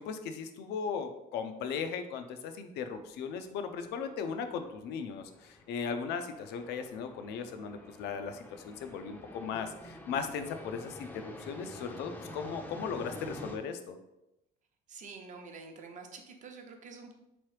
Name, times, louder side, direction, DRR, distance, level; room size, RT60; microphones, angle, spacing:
voice 1, 0.0-14.0, left 6 dB, 80° left, 8 dB, 0.5 m, -37 dB
sound 1, 3.0-13.6, left 1 dB, 10° left, 0.5 m, -49 dB
voice 2, 14.9-17.1, right 4 dB, 45° right, 4 dB, 0.7 m, -47 dB
3.7 x 3.0 x 3.2 m, 0.90 s
cardioid pair, 110°, 17 cm